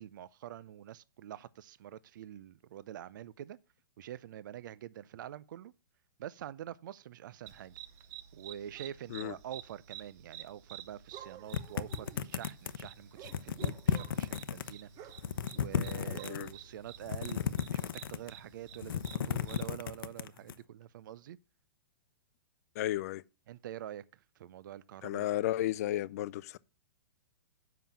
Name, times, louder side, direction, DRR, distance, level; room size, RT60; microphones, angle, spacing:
voice 1, 0.0-3.6 4.0-5.7 6.2-7.7 8.3-15.1 15.5-21.4 23.5-25.3, right 11 dB, 60° right, 0.5 m, -46 dB
sound 1, 7.5-19.7, right 11 dB, 30° right, 0.7 m, -51 dB
sound 2, 11.5-12.9 13.2-14.7 15.1-16.5 17.0-18.4 18.7-20.5, left 8 dB, 80° left, 0.7 m, -34 dB
voice 2, 22.7-23.2 25.0-26.6, left 14 dB, 45° left, 0.4 m, -33 dB
7.5 x 5.7 x 7.0 m
hypercardioid pair, 155°, 12 cm